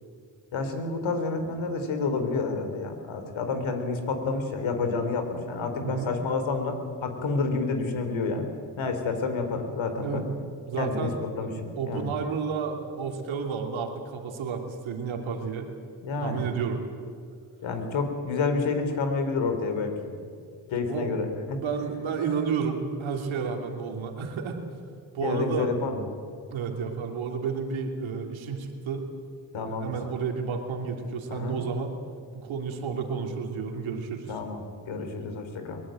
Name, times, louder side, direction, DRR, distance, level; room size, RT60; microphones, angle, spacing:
voice 1, 0.5-8.5 8.8-10.2 10.8-12.1 16.0-16.5 17.6-20.1 20.7-21.6 25.2-26.0 29.5-30.0 31.3-31.6 34.3-35.8, left 4 dB, 75° left, 6 dB, 3.6 m, -29 dB
voice 2, 10.7-11.2 11.8-15.7 16.2-16.8 20.9-21.1 21.5-24.6 25.1-25.7 26.5-29.1 29.7-32.0 32.3-34.3, right 5 dB, 80° right, 3 dB, 3.0 m, -31 dB
22.5 x 19.0 x 9.0 m, 2.3 s
cardioid pair, 70°, 46 cm